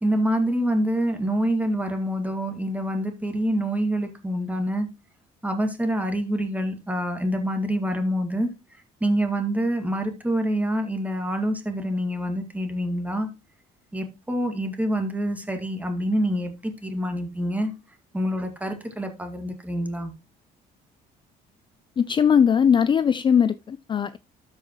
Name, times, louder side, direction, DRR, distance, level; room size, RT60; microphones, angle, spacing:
voice 1, 0.0-4.9 5.4-8.5 9.0-13.3 13.9-17.7 18.1-20.1, equal, 10° right, 2.1 m, -26 dB
voice 2, 22.0-24.2, left 7 dB, 30° left, 0.4 m, -20 dB
13.0 x 5.4 x 3.0 m
cardioid pair, 110°, 17 cm